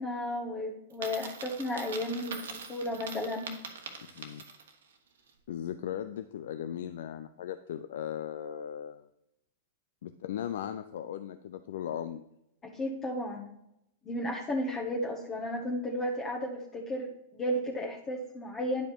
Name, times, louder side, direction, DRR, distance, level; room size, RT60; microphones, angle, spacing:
voice 1, 0.0-3.5 12.6-13.5 14.0-18.9, left 1 dB, 25° left, -1 dB, 1.4 m, -34 dB
Coin (dropping), 0.9-4.8, right 5 dB, 70° right, 1.2 m, -43 dB
voice 2, 4.0-4.4 5.5-9.1 10.0-12.2, left 10 dB, 65° left, 10 dB, 0.4 m, -37 dB
10.5 x 5.1 x 4.6 m, 0.80 s
hypercardioid pair, 105°, 0 cm